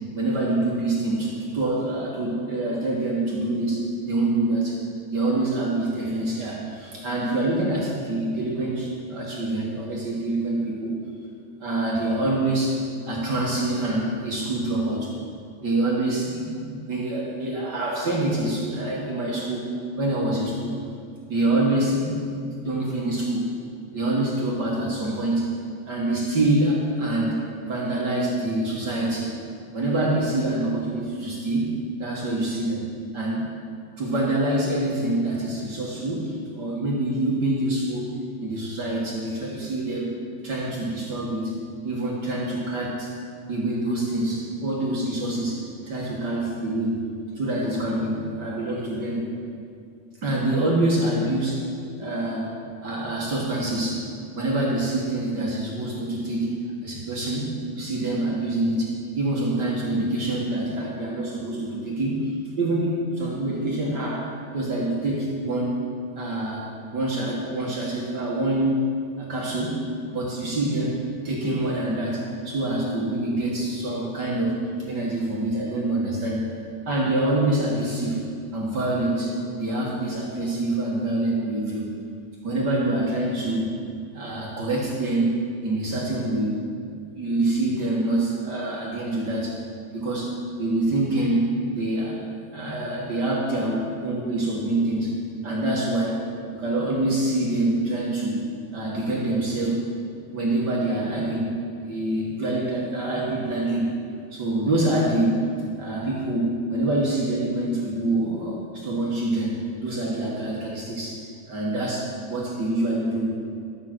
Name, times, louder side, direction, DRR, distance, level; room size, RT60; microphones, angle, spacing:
voice 1, 0.1-4.8 5.1-11.0 11.6-15.1 15.6-19.7 20.0-20.8 21.3-23.5 23.9-25.5 25.9-29.3 29.7-32.8 33.1-33.5 34.0-38.1 38.4-40.2 40.4-43.1 43.5-47.0 47.4-49.3 50.2-51.6 52.0-52.6 52.8-54.1 54.3-56.5 56.8-62.3 62.6-65.9 66.1-68.8 69.2-69.8 70.1-76.6 76.8-78.2 78.5-81.9 82.4-83.8 84.1-86.6 87.1-89.6 89.9-92.2 92.5-96.2 96.5-98.4 98.7-99.8 100.3-101.5 101.8-103.9 104.3-113.3, right 2 dB, 40° right, -4 dB, 1.7 m, -26 dB
12.5 x 7.8 x 6.2 m, 2.3 s
omnidirectional pair, 3.8 m